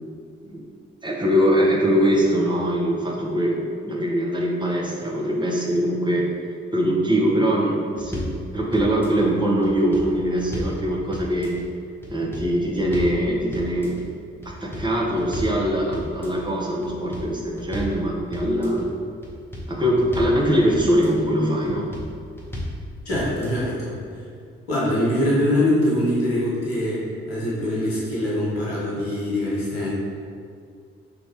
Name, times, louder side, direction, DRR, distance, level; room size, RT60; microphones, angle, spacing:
voice 1, 1.0-6.3 6.7-11.5 12.1-14.0 14.4-18.8 19.7-21.9, equal, 15° right, -3 dB, 1.0 m, -22 dB
sound 1, 8.0-8.4 8.7-9.3 9.6-10.8 11.1-11.7 12.0-12.5 12.8-13.2 13.5-14.0 14.4-15.6 15.9-16.4 16.8-18.0 18.3-18.9 19.2-20.4 20.7-21.3 21.6-22.1 22.4-22.8 23.1-23.6, left 1 dB, 10° left, 1.2 m, -33 dB
voice 2, 23.0-24.0 24.7-27.0 27.3-29.9, left 1 dB, 90° left, -7 dB, 1.0 m, -23 dB
5.9 x 2.8 x 2.9 m, 2.3 s
figure-of-eight pair, 40°, 30 cm